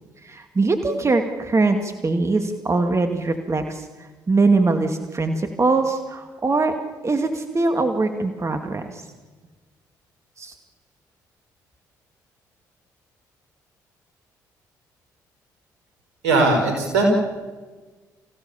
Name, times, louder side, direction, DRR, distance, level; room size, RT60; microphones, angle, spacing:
voice 1, 0.2-6.7 7.0-9.0 10.4-10.5, right 3 dB, 35° right, 6 dB, 2.3 m, -22 dB
voice 2, 16.2-17.1, right 3 dB, 85° right, 3 dB, 5.8 m, -19 dB
26.0 x 16.0 x 7.2 m, 1.3 s
hypercardioid pair, 50°, 9 cm